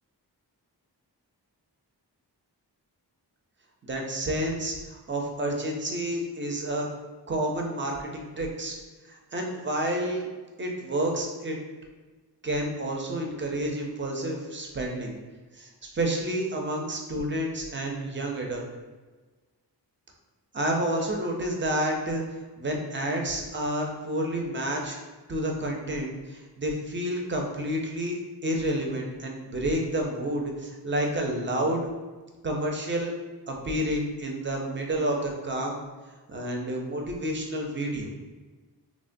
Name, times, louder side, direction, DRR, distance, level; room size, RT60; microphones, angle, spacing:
voice 1, 3.8-6.9 7.3-8.8 9.1-10.3 10.6-11.6 12.4-15.2 15.5-18.7 20.5-22.2 22.6-25.0 25.3-28.2 28.4-31.9 32.4-33.1 33.5-35.8 36.3-38.1, right 1 dB, 30° right, 0 dB, 0.5 m, -29 dB
3.1 x 2.1 x 2.5 m, 1.3 s
wide cardioid pair, 85°, 40 cm